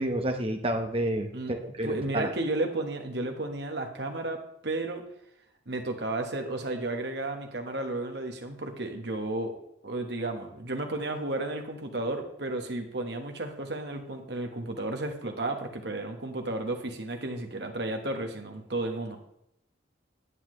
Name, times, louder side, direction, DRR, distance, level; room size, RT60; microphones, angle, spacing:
voice 1, 0.0-2.3, right 1 dB, 30° right, 5 dB, 0.9 m, -30 dB
voice 2, 1.8-4.4 4.6-5.0 5.7-9.5 9.8-19.2, right 2 dB, 60° right, 4 dB, 1.3 m, -33 dB
9.7 x 9.5 x 3.2 m, 0.76 s
head